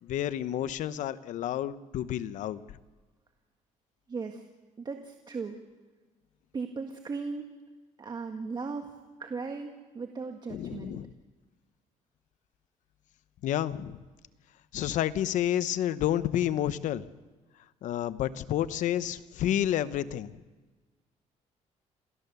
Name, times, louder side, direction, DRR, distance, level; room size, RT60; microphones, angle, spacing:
voice 1, 0.0-2.6 10.5-11.1 13.4-14.0 14.7-17.0 17.8-20.4, left 11 dB, 70° left, 14 dB, 0.9 m, -30 dB
voice 2, 4.1-4.4 4.8-5.6 6.5-7.5 8.0-8.9 9.2-11.0, right 4 dB, 35° right, 4 dB, 1.7 m, -37 dB
28.0 x 15.5 x 6.9 m, 1.3 s
cardioid pair, 100°, 13 cm